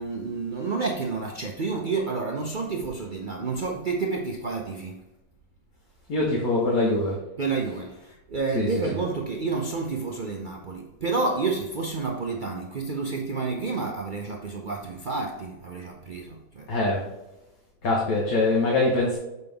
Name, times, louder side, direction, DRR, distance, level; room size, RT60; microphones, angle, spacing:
voice 1, 0.0-5.0 7.4-16.7, right 4 dB, 60° right, 0.5 m, -30 dB
voice 2, 6.1-7.2 8.5-8.7 16.7-17.0 17.8-19.2, left 2 dB, 60° left, 1.7 m, -23 dB
6.7 x 5.4 x 3.4 m
omnidirectional pair, 1.7 m